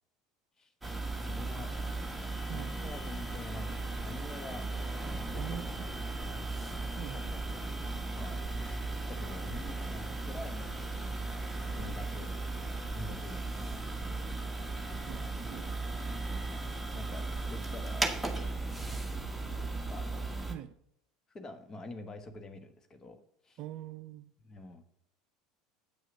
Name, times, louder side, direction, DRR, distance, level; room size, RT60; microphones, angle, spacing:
sound 1, 0.8-20.5, right 2 dB, 5° right, 1.4 m, -36 dB
voice 1, 1.2-1.7 2.5-4.7 5.3-6.3 7.1-10.7 11.0-11.2 11.8-12.3 12.9-13.6 16.2-16.5 16.9-18.2 19.9-20.3 21.3-23.6 24.4-24.8, left 2 dB, 25° left, 8 dB, 1.3 m, -47 dB
voice 2, 5.4-5.7 7.0-7.3 15.1-15.7 20.5-20.8 23.6-24.3, right 11 dB, 45° right, 13 dB, 0.5 m, -43 dB
8.2 x 6.3 x 6.2 m, 0.71 s
figure-of-eight pair, 70°, 2 cm